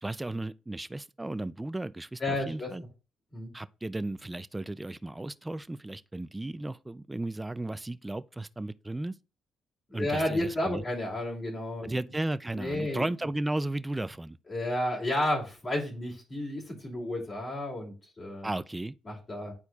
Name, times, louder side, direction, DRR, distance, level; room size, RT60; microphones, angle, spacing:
voice 1, 0.0-2.8 3.5-9.1 9.9-10.8 11.8-14.4 18.4-18.9, right 2 dB, 15° right, 0.4 m, -35 dB
voice 2, 2.2-2.7 3.3-3.5 9.9-12.1 12.5-13.1 14.5-18.5 19.0-19.5, left 1 dB, 35° left, 2.8 m, -32 dB
9.6 x 4.4 x 2.4 m
cardioid pair, 90°, 0 cm